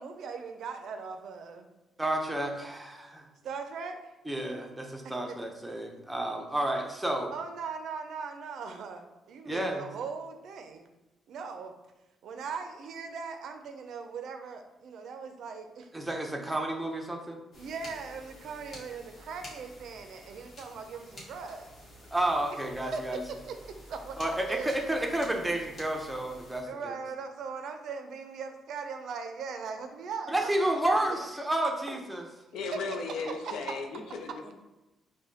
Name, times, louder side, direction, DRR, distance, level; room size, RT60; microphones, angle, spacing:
voice 1, 0.0-1.7 3.4-4.1 5.3-5.4 7.3-10.9 11.3-11.7 12.2-15.9 16.5-16.6 17.6-21.7 22.6-23.0 23.3-25.0 26.7-30.7 31.0-31.3 31.9-32.3 32.7-32.8 33.2-33.5, right 5 dB, 70° right, 6 dB, 0.4 m, -40 dB
voice 2, 2.0-3.3 4.3-7.3 9.5-9.9 15.9-17.4 22.1-23.2 24.2-26.9 30.3-32.3, right 1 dB, 10° right, 2 dB, 0.6 m, -31 dB
sound 1, 17.5-26.6, left 1 dB, 55° left, 1.3 m, -50 dB
voice 3, 32.5-34.5, left 4 dB, 80° left, 4 dB, 0.5 m, -36 dB
4.8 x 2.1 x 2.8 m, 1.1 s
cardioid pair, 90°, 0 cm